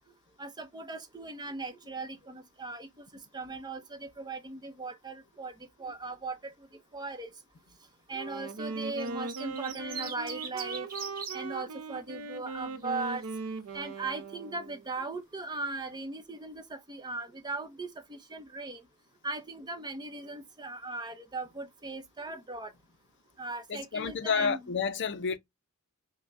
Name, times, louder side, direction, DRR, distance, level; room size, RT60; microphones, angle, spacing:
voice 1, 0.4-2.9 3.3-5.5 5.8-6.5 6.9-7.3 8.1-10.9 11.3-13.2 13.7-18.8 19.2-22.7 23.4-24.6, right 3 dB, 20° right, 0.7 m, -38 dB
Wind instrument woodwind instrument, 8.1-14.9, right 3 dB, 75° right, 0.6 m, -39 dB
sound 1, 8.8-11.4 12.6-13.1, right 6 dB, 40° right, 1.0 m, -40 dB
voice 2, 23.7-25.4, left 5 dB, 55° left, 0.5 m, -30 dB
5.6 x 2.1 x 2.4 m
head